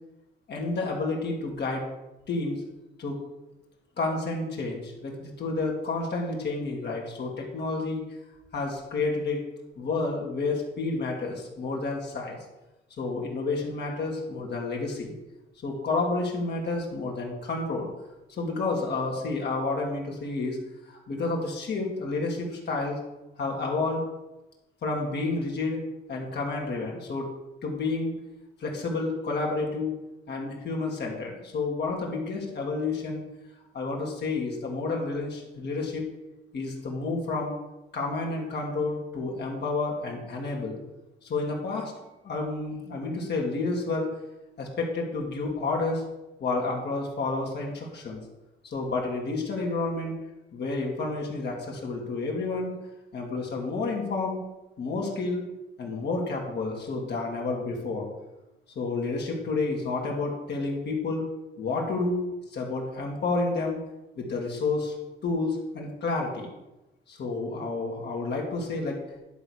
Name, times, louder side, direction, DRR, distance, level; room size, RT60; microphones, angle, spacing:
voice 1, 0.5-1.8 2.3-2.6 3.0-3.2 4.0-8.0 8.5-9.4 9.8-12.4 13.0-15.1 15.6-17.9 18.3-20.6 20.9-23.0 23.4-24.0 24.8-25.8 26.1-27.3 27.6-28.1 28.6-30.0 30.3-33.2 33.7-36.1 36.5-37.6 37.9-40.8 41.2-41.9 42.2-44.1 44.6-46.0 46.4-48.2 48.6-50.1 50.5-52.7 53.1-54.4 54.8-55.4 55.8-58.1 58.8-61.3 61.6-63.8 64.2-64.9 65.2-66.5 67.1-69.0, left 3 dB, 60° left, -1 dB, 2.4 m, -30 dB
11.0 x 4.1 x 6.4 m, 0.98 s
cardioid pair, 90°, 20 cm